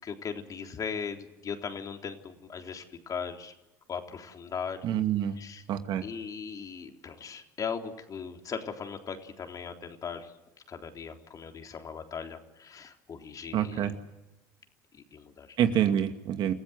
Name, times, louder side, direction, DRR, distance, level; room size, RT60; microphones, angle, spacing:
voice 1, 0.0-3.5 3.9-4.8 5.4-5.6 6.0-10.3 10.7-13.9 15.1-15.5, left 6 dB, 40° left, 4 dB, 3.7 m, -38 dB
voice 2, 4.8-5.4 5.7-6.1 13.5-13.9 15.6-16.5, right 10 dB, 55° right, 7 dB, 2.3 m, -27 dB
29.0 x 15.5 x 8.1 m, 1.0 s
hypercardioid pair, 75°, 9 cm